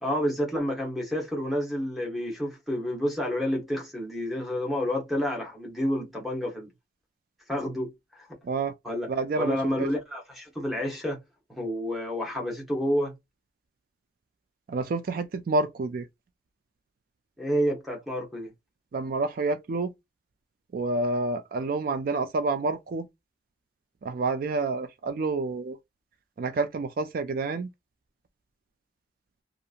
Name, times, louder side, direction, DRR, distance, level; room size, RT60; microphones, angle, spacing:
voice 1, 0.0-6.7 7.5-8.3 8.8-9.1 9.4-11.2 11.5-13.1 17.4-18.5, equal, ahead, 1.0 m, -29 dB
voice 2, 9.1-9.9 14.7-16.1 18.9-19.9 20.7-23.1 24.0-25.8 26.4-27.7, right 3 dB, 50° right, 0.3 m, -28 dB
2.8 x 2.4 x 2.4 m
head